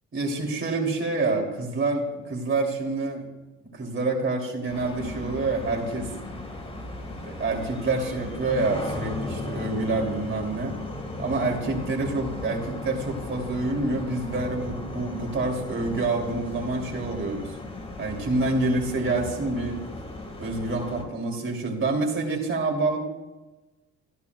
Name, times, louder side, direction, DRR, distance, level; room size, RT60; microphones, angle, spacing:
voice 1, 0.1-3.3 3.7-6.1 7.1-10.8 11.2-17.6 18.0-19.8 20.4-23.0, right 3 dB, 40° right, 0 dB, 3.1 m, -27 dB
sound 1, 4.7-21.0, left 2 dB, 20° left, 1.8 m, -36 dB
15.0 x 10.5 x 2.4 m, 1.1 s
cardioid pair, 90°, 30 cm